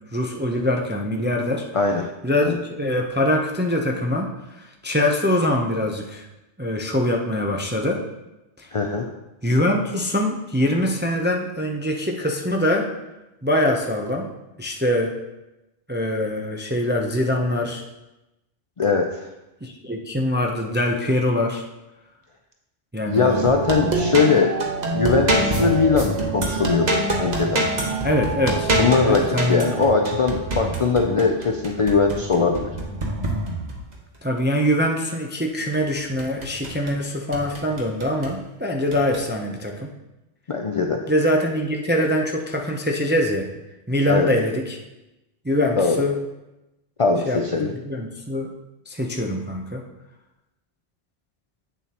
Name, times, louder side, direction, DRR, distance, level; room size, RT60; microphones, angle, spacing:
voice 1, 0.1-1.7 2.2-4.4 4.8-6.3 6.6-8.0 8.6-8.7 9.4-12.9 13.4-14.3 14.6-15.1 15.9-17.8 19.6-21.6 22.9-23.4 28.0-28.7 29.1-29.7 34.2-39.9 41.1-43.5 43.9-44.8 45.4-46.2 47.3-48.5 48.9-49.8, left 1 dB, 15° right, 1 dB, 0.4 m, -23 dB
voice 2, 1.7-2.1 2.4-2.5 8.7-9.1 18.8-19.3 23.1-24.5 24.9-27.6 28.8-32.7 40.5-41.0 44.1-44.3 45.8-46.0 47.0-47.7, left 4 dB, 50° left, 3 dB, 0.4 m, -21 dB
sound 1, 23.3-33.9 35.7-37.0 37.3-38.3 38.9-39.2, right 1 dB, 40° right, 1.2 m, -26 dB
8.5 x 7.0 x 2.9 m, 0.97 s
omnidirectional pair, 1.2 m